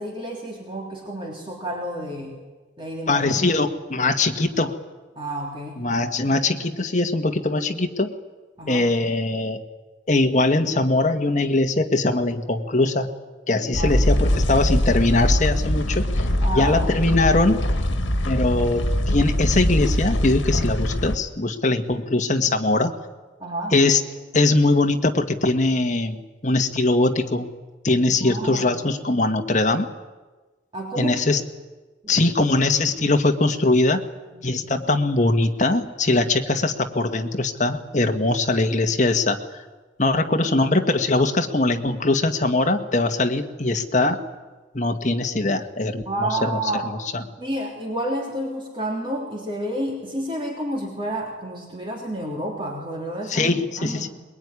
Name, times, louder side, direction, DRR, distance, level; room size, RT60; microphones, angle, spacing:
voice 1, 0.0-2.4 2.8-3.2 3.5-3.7 5.1-5.8 8.6-8.9 13.8-13.9 16.4-16.8 23.4-23.7 28.2-28.9 30.7-31.2 32.0-32.3 34.3-34.6 40.4-40.5 46.0-46.9 47.2-54.1, right 1 dB, 25° right, -1 dB, 3.2 m, -30 dB
voice 2, 3.1-4.8 5.8-8.1 8.7-9.6 10.1-13.1 13.5-16.3 16.5-17.7 18.2-22.9 23.7-24.0 24.3-27.5 27.8-29.9 31.0-31.4 32.1-34.0 34.4-39.6 40.0-44.2 44.7-47.2 53.3-54.1, left 2 dB, 40° left, 5 dB, 1.6 m, -21 dB
sound 1, 13.7-21.2, left 1 dB, 80° left, 1.7 m, -22 dB
22.0 x 21.5 x 9.7 m, 1.3 s
head